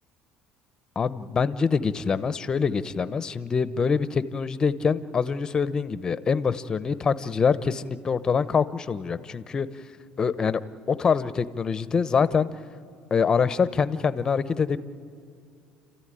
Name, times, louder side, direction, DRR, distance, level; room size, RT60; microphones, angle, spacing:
voice 1, 1.0-9.7 10.2-10.6 10.9-12.5 13.1-14.8, left 5 dB, 25° left, 14 dB, 0.7 m, -25 dB
30.0 x 14.0 x 10.0 m, 2.5 s
cardioid pair, 135°, 3 cm